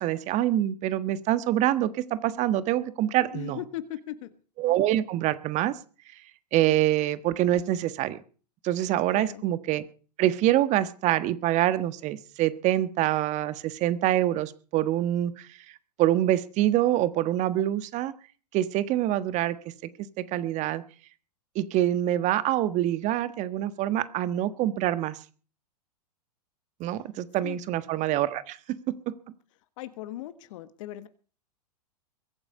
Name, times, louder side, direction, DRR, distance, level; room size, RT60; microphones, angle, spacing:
voice 1, 0.0-3.6 4.6-5.7 6.5-8.2 8.6-9.8 10.2-15.5 16.0-18.1 18.5-19.6 20.2-20.8 21.5-25.2 26.8-28.6 29.1-29.2, right 13 dB, 35° right, 13 dB, 1.4 m, -25 dB
voice 2, 3.3-4.4 9.1-9.4 26.9-27.0 27.4-27.6 29.8-31.1, left 14 dB, 55° left, 12 dB, 1.4 m, -38 dB
22.5 x 8.8 x 5.5 m, 0.40 s
hypercardioid pair, 105°, 20 cm